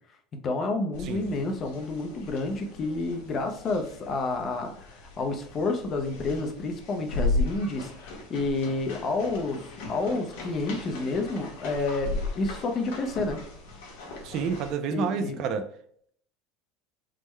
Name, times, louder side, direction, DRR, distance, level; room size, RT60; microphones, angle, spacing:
voice 1, 0.4-13.4 14.9-15.4, left 3 dB, 30° left, 5 dB, 0.5 m, -30 dB
sound 1, 0.9-14.7, left 2 dB, 85° left, 1.0 m, -36 dB
voice 2, 14.2-15.7, right 6 dB, 45° right, 9 dB, 0.3 m, -29 dB
3.5 x 2.1 x 3.0 m, 0.62 s
cardioid pair, 155°, 0 cm